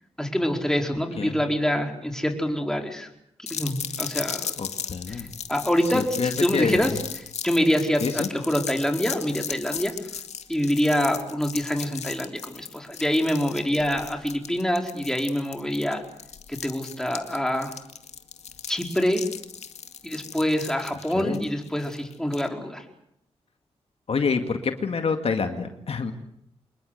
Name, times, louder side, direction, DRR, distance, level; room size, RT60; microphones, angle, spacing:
voice 1, 0.2-3.1 3.5-4.5 5.1-5.2 5.5-6.9 7.4-9.9 10.5-16.0 16.6-17.7 18.7-19.2 20.0-22.8, equal, 5° left, 3 dB, 4.7 m, -25 dB
sound 1, 3.5-22.5, left 7 dB, 80° left, 2.0 m, -37 dB
voice 2, 4.6-5.3 5.9-6.9 8.0-8.3 21.1-21.4 24.1-26.1, left 5 dB, 60° left, 6 dB, 2.2 m, -27 dB
26.5 x 21.0 x 8.1 m, 0.73 s
cardioid pair, 75°, 11 cm